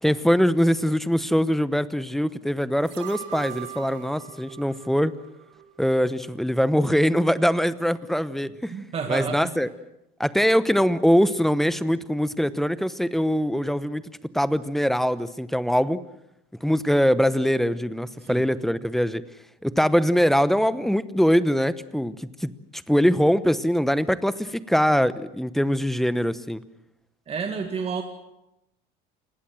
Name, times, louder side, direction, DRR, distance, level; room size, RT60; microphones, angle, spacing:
voice 1, 0.0-5.2 5.8-8.7 9.1-9.7 10.2-14.0 14.3-16.0 16.6-19.2 19.6-22.5 22.9-26.6, equal, ahead, 15 dB, 0.9 m, -22 dB
sound 1, 2.8-6.0 6.3-6.4, right 12 dB, 85° right, 7.6 m, -40 dB
voice 2, 8.7-9.6 18.2-18.5 27.3-28.0, right 5 dB, 30° right, 5 dB, 2.0 m, -30 dB
28.0 x 20.5 x 7.7 m, 0.86 s
cardioid pair, 145°, 21 cm